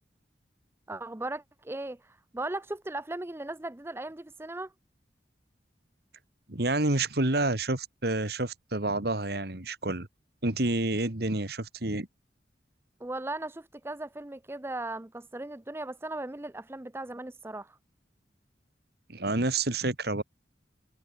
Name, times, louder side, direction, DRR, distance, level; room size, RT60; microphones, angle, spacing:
voice 1, 0.9-4.7 13.0-17.8, right 2 dB, 15° right, 0.6 m, -37 dB
voice 2, 6.5-10.1 10.4-12.1 19.1-20.2, right 2 dB, 60° right, 2.3 m, -29 dB
head